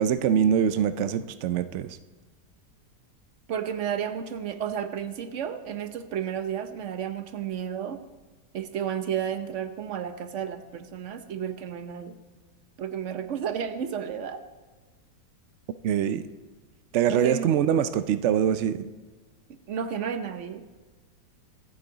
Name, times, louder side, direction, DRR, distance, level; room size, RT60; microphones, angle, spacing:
voice 1, 0.0-2.0 15.8-16.2 16.9-18.9, right 8 dB, 85° right, 12 dB, 0.6 m, -24 dB
voice 2, 3.5-8.0 8.5-12.2 12.8-14.4 17.1-17.5 19.5-20.6, right 8 dB, 55° right, 9 dB, 1.0 m, -32 dB
24.5 x 8.4 x 3.9 m, 1.3 s
omnidirectional pair, 1.8 m